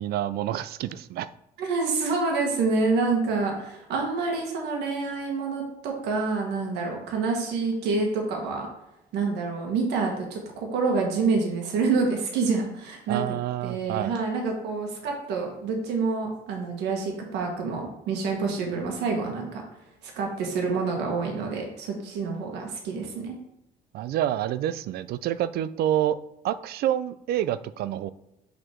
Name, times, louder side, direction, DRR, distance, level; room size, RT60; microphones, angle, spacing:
voice 1, 0.0-1.3 13.1-14.1 23.9-26.2 26.4-28.1, right 12 dB, 70° right, 14 dB, 0.4 m, -28 dB
voice 2, 1.6-8.7 9.1-13.2 13.6-19.6 20.0-23.4, right 4 dB, 85° right, 1 dB, 1.7 m, -27 dB
6.3 x 4.2 x 4.6 m, 0.88 s
cardioid pair, 110°, 17 cm